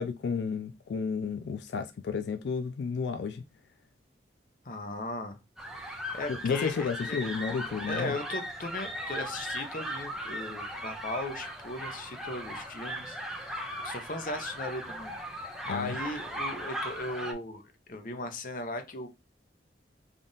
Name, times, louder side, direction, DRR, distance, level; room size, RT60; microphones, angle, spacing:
voice 1, 0.0-3.4 6.3-8.1 15.6-16.0, left 5 dB, 80° left, 0.3 m, -32 dB
voice 2, 4.6-5.4 5.8-7.3 7.8-17.6 17.9-19.1, left 2 dB, 45° left, 0.6 m, -38 dB
sound 1, 5.6-17.3, equal, 5° right, 0.4 m, -38 dB
3.6 x 2.4 x 3.8 m
head